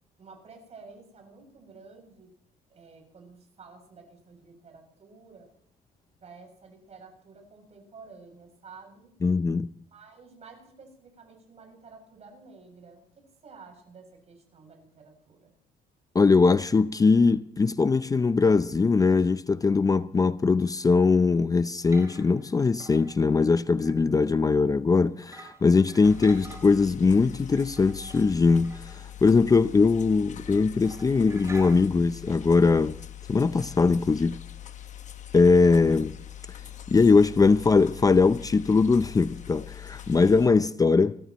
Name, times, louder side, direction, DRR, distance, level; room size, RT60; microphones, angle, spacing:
voice 1, 0.2-2.3 2.7-5.5 6.2-9.1 9.9-15.5, right 4 dB, 40° right, 7.6 m, -51 dB
voice 2, 9.2-9.7 16.1-33.0 33.3-34.4 35.3-36.2 36.9-41.2, left 4 dB, 20° left, 0.6 m, -21 dB
sound 1, 21.8-22.5 22.8-24.2 24.5-24.7 25.2-27.0 27.4-29.7 30.0-30.1 30.4-30.6 30.8-31.9, right 2 dB, 15° right, 3.9 m, -48 dB
sound 2, 26.0-40.5, left 11 dB, 45° left, 1.0 m, -43 dB
29.5 x 14.0 x 3.1 m
cardioid pair, 110°, 17 cm